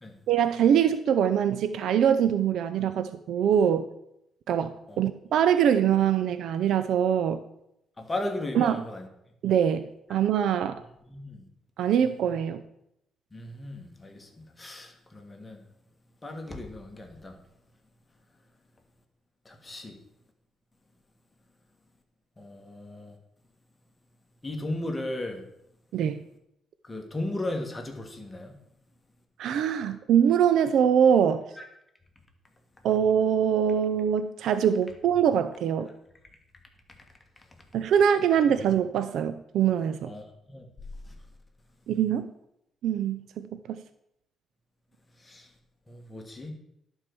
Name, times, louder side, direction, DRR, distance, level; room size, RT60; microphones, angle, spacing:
voice 1, 0.3-3.9 4.5-7.4 8.6-8.8 9.4-10.8 11.8-12.6 25.9-26.2 29.4-31.5 32.8-35.9 37.7-40.1 41.9-42.3 42.8-43.8, right 8 dB, 75° right, 11 dB, 0.5 m, -23 dB
voice 2, 8.0-9.1 11.1-11.5 13.3-15.6 16.2-17.4 19.5-20.0 22.4-23.2 24.4-25.4 26.8-28.6 31.6-31.7 40.1-40.6 41.1-41.2 45.2-45.5 45.9-46.5, left 1 dB, 20° left, 3 dB, 1.7 m, -36 dB
11.0 x 4.6 x 6.9 m, 0.80 s
cardioid pair, 90°, 0 cm